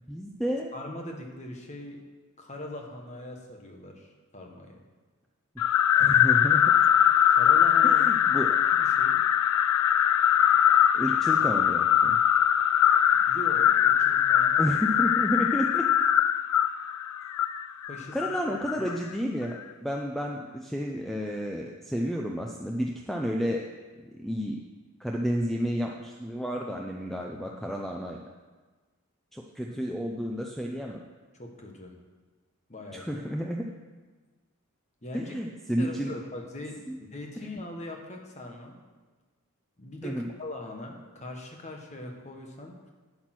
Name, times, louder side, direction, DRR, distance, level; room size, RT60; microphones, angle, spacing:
voice 1, 0.1-0.7 5.9-6.7 7.8-8.5 10.9-12.2 14.6-15.9 18.1-23.6 24.2-24.6 25.0-28.3 29.3-31.0 32.9-33.6 35.1-36.1 36.9-37.0 37.4-37.5 40.0-40.3, equal, ahead, 0 dB, 0.5 m, -31 dB
voice 2, 0.7-2.0 2.4-4.8 7.3-8.0 8.4-9.2 13.3-14.7 17.9-18.2 18.5-18.8 29.7-29.8 31.4-32.0 32.7-33.1 35.0-38.8 39.8-42.9, left 1 dB, 30° left, 2 dB, 1.4 m, -41 dB
sound 1, 5.6-18.9, left 9 dB, 85° left, 0.4 m, -22 dB
8.7 x 8.7 x 6.0 m, 1.3 s
head